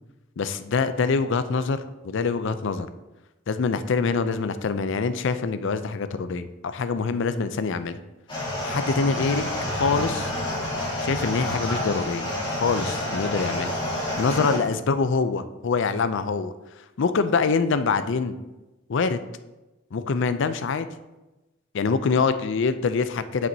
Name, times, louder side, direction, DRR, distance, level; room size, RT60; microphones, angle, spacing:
voice 1, 0.4-2.9 3.5-8.0 8.6-10.3 11.0-12.3 12.6-13.7 14.2-16.5 17.0-18.4 18.9-19.2 19.9-20.9 21.7-23.5, left 4 dB, 65° left, 12 dB, 0.5 m, -25 dB
sound 1, 8.3-14.6, left 1 dB, 25° left, 2.5 m, -28 dB
8.7 x 7.5 x 2.7 m, 1.1 s
head